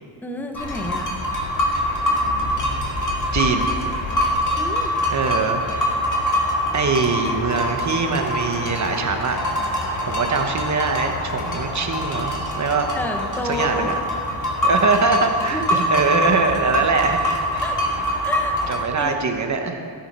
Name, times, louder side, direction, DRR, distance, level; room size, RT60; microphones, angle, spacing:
voice 1, 0.2-1.1 4.6-4.9 12.9-13.9 15.5-15.8 17.6-17.8 18.2-18.5 19.0-19.2, left 1 dB, 5° left, 3 dB, 0.7 m, -29 dB
sound 1, 0.5-18.8, left 1 dB, 40° left, 2.1 m, -24 dB
voice 2, 3.3-3.7 5.1-5.8 6.7-9.4 10.1-12.9 13.4-14.0 14.6-17.6 18.7-19.8, right 4 dB, 35° right, 5 dB, 1.1 m, -23 dB
15.0 x 9.0 x 5.5 m, 2.3 s
wide cardioid pair, 175°, 46 cm